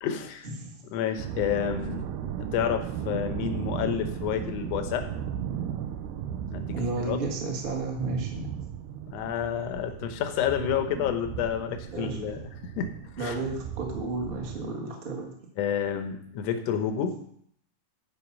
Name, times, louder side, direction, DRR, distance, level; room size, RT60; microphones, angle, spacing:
voice 1, 0.0-0.5 0.9-5.0 6.5-6.8 7.0-7.2 9.1-12.4 12.8-12.9 13.2-13.4 15.6-17.2, left 9 dB, 65° left, 6 dB, 1.8 m, -29 dB
sound 1, 1.2-14.7, right 9 dB, 85° right, 2.4 m, -36 dB
voice 2, 6.7-8.5 11.9-12.2 13.2-15.3, right 3 dB, 25° right, 0 dB, 1.1 m, -32 dB
12.0 x 4.9 x 5.9 m, 0.66 s
omnidirectional pair, 3.8 m